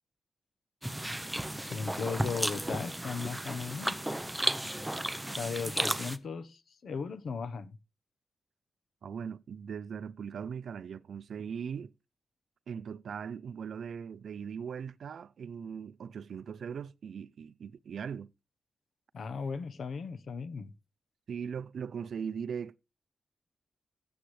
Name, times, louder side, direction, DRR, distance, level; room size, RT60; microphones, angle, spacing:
sound 1, 0.8-6.2, right 1 dB, 5° right, 0.7 m, -34 dB
voice 1, 1.7-4.0 5.4-7.8 19.1-20.7, left 5 dB, 65° left, 1.0 m, -37 dB
voice 2, 9.0-11.9 12.7-18.3 21.3-22.8, right 7 dB, 75° right, 0.5 m, -39 dB
16.0 x 8.0 x 3.2 m
wide cardioid pair, 125°, 0 cm